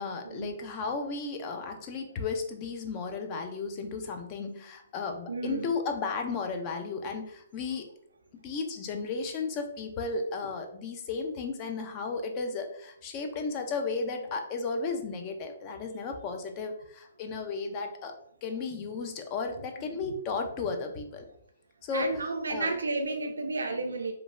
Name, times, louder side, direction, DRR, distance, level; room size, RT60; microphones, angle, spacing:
voice 1, 0.0-7.9 8.4-18.2 18.4-21.3 21.8-22.1 22.5-22.7, left 4 dB, 30° left, 5 dB, 0.4 m, -34 dB
voice 2, 5.3-5.7 21.9-24.1, right 3 dB, 90° right, 4 dB, 0.5 m, -32 dB
3.1 x 2.1 x 2.4 m, 0.68 s
hypercardioid pair, 145°, 0 cm